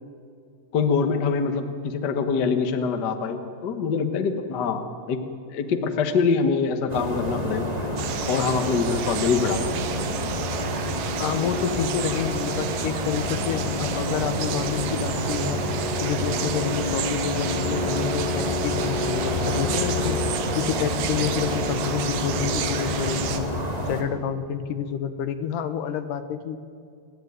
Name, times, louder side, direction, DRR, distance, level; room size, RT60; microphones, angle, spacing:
voice 1, 0.7-5.2 5.5-7.7 8.3-9.9, left 5 dB, 90° left, 7 dB, 0.9 m, -24 dB
sound 1, 6.9-24.0, left 1 dB, 15° right, 1.5 m, -28 dB
sound 2, 8.0-23.4, right 9 dB, 75° right, 2.8 m, -33 dB
voice 2, 11.2-15.6 16.0-20.2 20.6-23.5 23.9-26.6, left 8 dB, 70° left, 10 dB, 2.5 m, -29 dB
29.0 x 11.0 x 9.5 m, 2.3 s
omnidirectional pair, 4.1 m